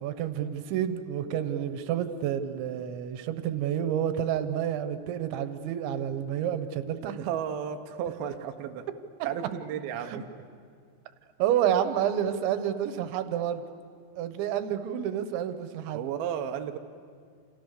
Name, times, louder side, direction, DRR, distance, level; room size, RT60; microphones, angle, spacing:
voice 1, 0.0-7.2 10.0-10.2 11.4-13.6 14.2-16.0, right 10 dB, 85° right, 10 dB, 3.4 m, -29 dB
voice 2, 7.1-8.8 9.2-10.2 15.9-16.8, right 9 dB, 70° right, 5 dB, 2.7 m, -33 dB
29.0 x 28.5 x 6.7 m, 2.1 s
omnidirectional pair, 5.2 m